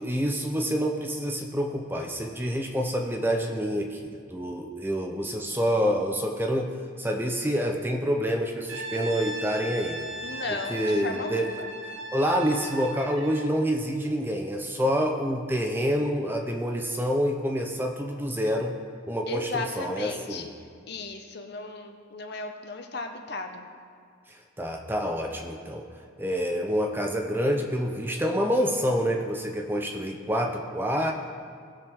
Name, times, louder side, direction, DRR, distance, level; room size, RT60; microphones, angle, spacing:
voice 1, 0.0-6.7 7.0-10.0 10.5-11.6 12.1-18.7 19.1-20.5 24.3-25.8 26.2-31.1, equal, 10° right, 2 dB, 0.7 m, -27 dB
Brass instrument, 8.7-13.5, right 1 dB, 65° right, 1.0 m, -37 dB
voice 2, 10.2-11.7 19.3-20.5 20.9-23.7, left 3 dB, 55° left, 5 dB, 0.9 m, -35 dB
18.5 x 6.3 x 3.6 m, 2.2 s
head